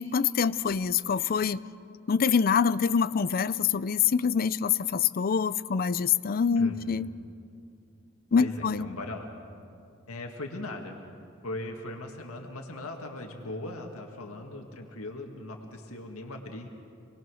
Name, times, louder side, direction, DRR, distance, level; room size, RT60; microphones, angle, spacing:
voice 1, 0.0-1.6 2.1-7.1 8.3-8.9, left 6 dB, 45° left, 16 dB, 0.4 m, -25 dB
voice 2, 8.4-9.3 10.1-11.0 11.4-16.7, left 2 dB, 85° left, 2 dB, 1.9 m, -39 dB
27.5 x 20.0 x 6.3 m, 2.5 s
head